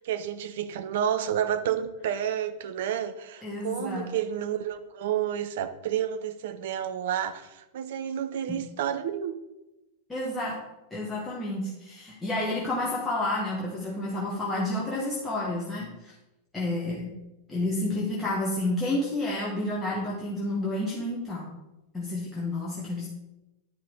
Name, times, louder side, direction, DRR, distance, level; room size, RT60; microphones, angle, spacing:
voice 1, 0.0-9.3, right 9 dB, 55° right, 11 dB, 0.5 m, -30 dB
voice 2, 3.4-4.1 8.5-8.6 10.1-10.5 10.9-16.1 16.5-17.1 17.5-21.5 21.9-23.1, left 1 dB, 10° left, -6 dB, 1.6 m, -30 dB
9.9 x 5.5 x 3.6 m, 0.98 s
figure-of-eight pair, 90°, 0 cm